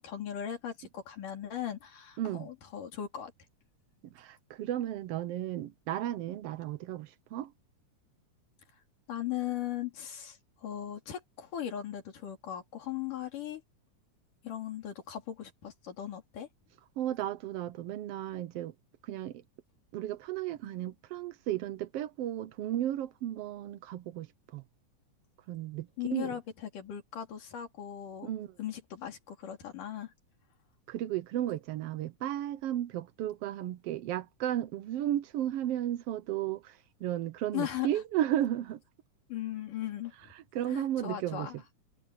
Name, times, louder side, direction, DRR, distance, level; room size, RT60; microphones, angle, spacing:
voice 1, 0.0-3.3 9.1-13.6 14.4-16.5 26.0-28.3 28.6-30.1 37.5-37.9 39.3-40.3 40.7-41.6, left 11 dB, 85° left, 4.6 m, -38 dB
voice 2, 2.2-2.5 4.1-7.5 17.0-18.7 19.0-19.4 19.9-24.6 25.5-26.4 28.2-28.5 30.9-38.8 40.4-41.5, right 12 dB, 75° right, 1.4 m, -34 dB
omnidirectional pair, 3.6 m